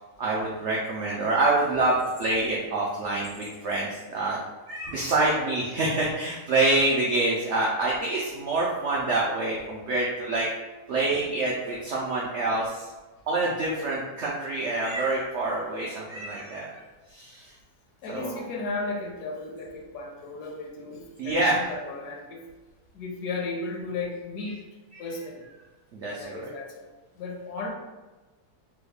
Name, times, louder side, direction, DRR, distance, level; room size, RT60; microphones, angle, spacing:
voice 1, 0.2-4.4 4.7-10.5 10.9-12.9 13.3-16.7 17.1-17.5 18.1-18.4 21.2-21.6 25.9-26.4, right 2 dB, 85° right, -3 dB, 0.6 m, -26 dB
voice 2, 18.0-22.4 22.9-24.6 25.0-25.5 26.1-26.8 27.1-27.7, left 3 dB, 75° left, 0 dB, 1.1 m, -35 dB
3.4 x 2.3 x 3.3 m, 1.2 s
omnidirectional pair, 1.8 m